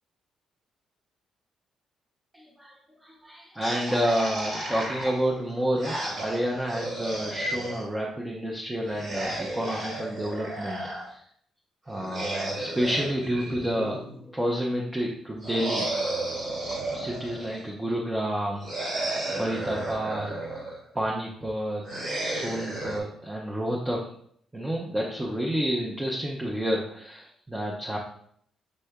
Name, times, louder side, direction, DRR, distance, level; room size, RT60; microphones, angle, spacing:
voice 1, 2.3-2.7 3.0-11.2 11.9-14.0 14.3-15.9 16.9-18.7 19.3-20.4 20.9-21.8 22.1-24.1 24.5-28.0, equal, 10° right, -2 dB, 0.7 m, -29 dB
sound 1, 3.6-7.9 8.9-11.1 11.9-14.3 15.4-17.6 18.6-20.8 21.8-23.0, right 2 dB, 55° right, 1.8 m, -33 dB
6.4 x 3.2 x 2.3 m, 0.65 s
cardioid pair, 90°, 0 cm